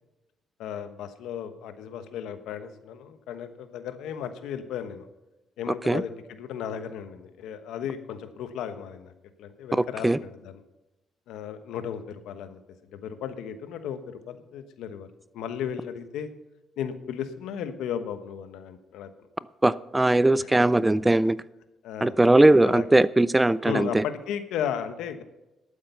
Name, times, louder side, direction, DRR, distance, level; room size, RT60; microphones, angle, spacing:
voice 1, 0.6-5.1 5.6-9.1 9.4-10.5 11.3-12.6 12.9-15.1 15.3-16.3 16.8-19.1 20.3-20.5 21.8-22.1 22.7-22.8 23.6-25.2, left 8 dB, 85° left, 9 dB, 1.1 m, -35 dB
voice 2, 5.7-6.0 9.7-10.2 19.6-21.4 22.0-24.0, right 2 dB, 15° right, 19 dB, 0.4 m, -20 dB
12.0 x 8.8 x 5.6 m, 0.99 s
cardioid pair, 90°, 0 cm